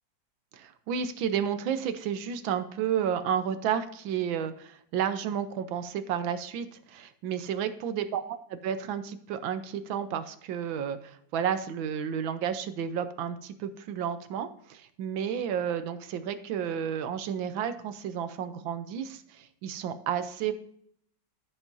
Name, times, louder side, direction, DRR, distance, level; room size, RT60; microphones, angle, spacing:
voice 1, 0.5-20.5, right 8 dB, 90° right, 11 dB, 1.6 m, -31 dB
15.0 x 5.9 x 2.6 m, 0.64 s
omnidirectional pair, 2.1 m